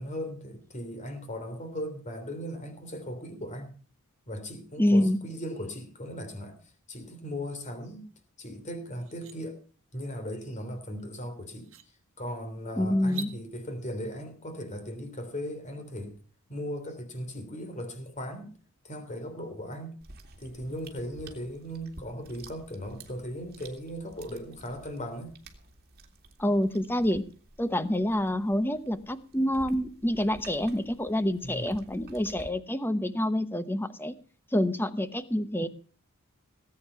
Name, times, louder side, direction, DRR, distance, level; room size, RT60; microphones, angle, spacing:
voice 1, 0.0-3.7 4.3-6.6 6.9-8.1 8.4-9.6 9.9-11.7 12.2-16.2 16.5-18.5 18.8-19.9 20.4-25.3 31.4-31.8, equal, 35° left, 3.3 m, -38 dB
voice 2, 4.8-5.2 12.8-13.3 26.4-27.2 27.6-34.1 34.5-35.7, left 1 dB, 10° left, 0.9 m, -27 dB
sound 1, 8.4-8.5 8.9-9.4 11.0-11.1 11.6-11.9 13.0-13.4, right 6 dB, 65° right, 1.4 m, -42 dB
sound 2, 20.0-32.5, right 2 dB, 45° right, 2.5 m, -52 dB
18.5 x 8.8 x 5.7 m
head